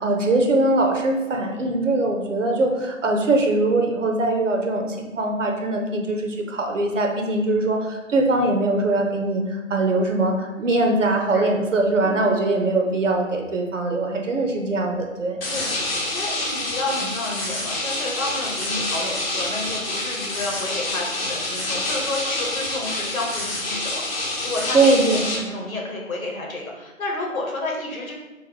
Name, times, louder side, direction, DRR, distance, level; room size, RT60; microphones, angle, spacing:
voice 1, 0.0-15.4 24.7-25.2, right 2 dB, 65° right, 2 dB, 0.7 m, -21 dB
sound 1, 15.4-25.4, left 2 dB, 45° left, 0.9 m, -27 dB
voice 2, 15.5-28.1, left 2 dB, 85° left, -1 dB, 1.2 m, -31 dB
3.1 x 3.0 x 3.8 m, 1.2 s
figure-of-eight pair, 160°, 40 cm